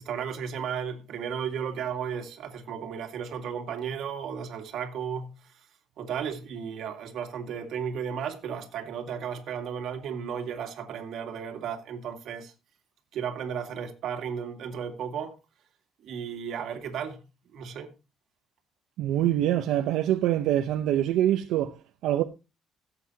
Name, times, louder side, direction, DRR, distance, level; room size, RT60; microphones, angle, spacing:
voice 1, 0.0-5.3 6.0-12.5 13.1-15.3 16.0-17.2 17.5-17.9, right 7 dB, 65° right, 2.2 m, -34 dB
voice 2, 19.0-22.2, right 12 dB, 85° right, 0.7 m, -25 dB
17.0 x 8.0 x 2.8 m
cardioid pair, 140°, 0 cm